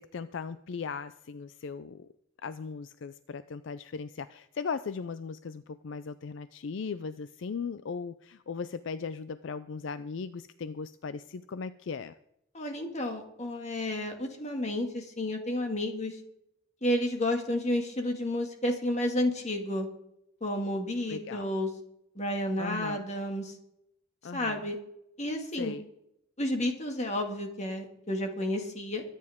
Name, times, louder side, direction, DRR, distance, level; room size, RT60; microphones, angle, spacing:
voice 1, 0.0-2.1 2.4-12.1 21.1-21.5 22.6-23.0 24.2-24.6 25.6-25.8, left 5 dB, 65° left, 14 dB, 0.4 m, -38 dB
voice 2, 12.5-16.2 16.8-19.9 20.4-21.7 22.2-23.5 24.3-24.8 25.2-25.8 26.4-29.0, left 1 dB, 35° left, 3 dB, 2.0 m, -31 dB
23.0 x 9.9 x 3.6 m, 0.80 s
head